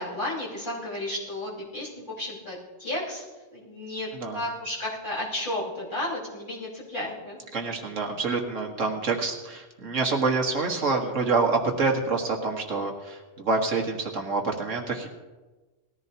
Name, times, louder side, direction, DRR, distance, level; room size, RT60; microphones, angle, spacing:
voice 1, 0.0-3.2 3.5-4.1 4.3-7.4, left 1 dB, 40° left, -7 dB, 5.0 m, -33 dB
voice 2, 7.5-15.1, right 3 dB, 75° right, 2 dB, 1.9 m, -27 dB
19.5 x 14.5 x 2.9 m, 1.2 s
omnidirectional pair, 1.3 m